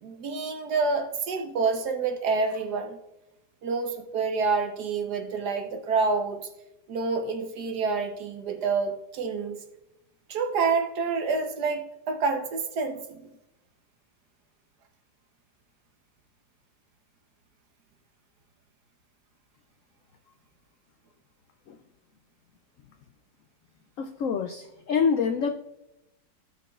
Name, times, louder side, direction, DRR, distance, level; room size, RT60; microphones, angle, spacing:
voice 1, 0.0-3.0 3.6-6.5 6.9-9.6 10.3-13.3, right 4 dB, 65° right, 5 dB, 1.4 m, -28 dB
voice 2, 24.0-25.5, left 6 dB, 75° left, 7 dB, 0.7 m, -26 dB
16.5 x 6.1 x 2.4 m, 0.91 s
omnidirectional pair, 1.9 m